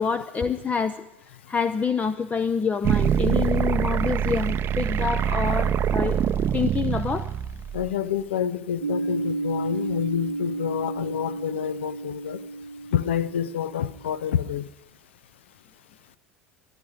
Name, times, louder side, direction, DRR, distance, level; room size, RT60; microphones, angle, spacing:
voice 1, 0.0-6.2 6.5-7.3, left 6 dB, 20° left, 0.6 m, -27 dB
sound 1, 2.8-7.9, right 9 dB, 35° right, 0.6 m, -24 dB
voice 2, 3.2-3.5 4.2-4.4 5.2-5.4 7.7-12.4 12.9-14.7, left 9 dB, 75° left, 0.7 m, -28 dB
sound 2, 8.8-14.3, right 2 dB, 85° right, 0.6 m, -32 dB
23.5 x 11.0 x 5.0 m
figure-of-eight pair, 75°, 6 cm